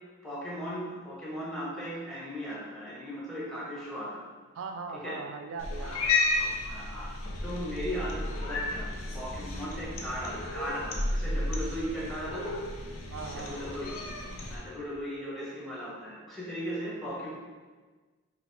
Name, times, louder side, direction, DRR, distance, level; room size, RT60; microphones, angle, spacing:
voice 1, 0.2-4.2 5.0-5.2 5.8-7.1 7.4-8.9 9.1-12.6 13.4-13.9 14.5-17.3, equal, ahead, -6 dB, 0.9 m, -37 dB
voice 2, 4.5-6.1 13.1-13.6, right 4 dB, 75° right, 5 dB, 0.3 m, -39 dB
Cat, 5.6-14.6, left 2 dB, 85° left, 0.6 m, -33 dB
4.6 x 2.4 x 3.3 m, 1.4 s
head